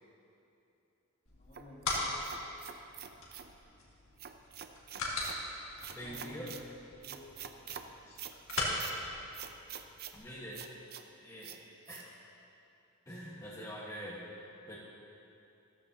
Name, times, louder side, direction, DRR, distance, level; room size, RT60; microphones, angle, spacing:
sound 1, 1.3-10.2, left 2 dB, 65° left, 2.1 m, -40 dB
voice 1, 1.3-2.5 6.0-6.6 7.0-7.6, left 2 dB, 40° left, -7 dB, 2.9 m, -54 dB
sound 2, 1.5-3.5 4.2-5.4 5.8-6.6 7.0-7.8 8.2-8.9 9.3-10.2 10.5-11.0 11.4-11.6 11.9-12.0, right 9 dB, 45° right, 0.6 m, -46 dB
voice 2, 5.9-6.5 8.0-8.2 10.1-10.7 11.2-11.6 11.9-12.0 13.0-14.8, equal, 15° left, -8 dB, 1.4 m, -45 dB
14.0 x 13.5 x 2.8 m, 2.8 s
head